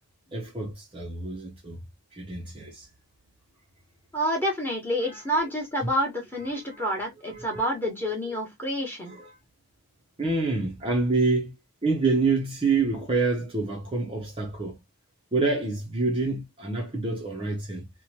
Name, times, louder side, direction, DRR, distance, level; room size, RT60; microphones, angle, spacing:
voice 1, 0.3-1.8 2.1-2.9 5.0-5.3 6.5-6.8 7.2-7.7 9.1-9.4 10.2-11.5 11.8-14.8 15.3-17.9, right 3 dB, 25° right, 0.5 m, -27 dB
voice 2, 4.1-9.1, equal, 10° left, 0.9 m, -28 dB
2.9 x 2.1 x 2.7 m
head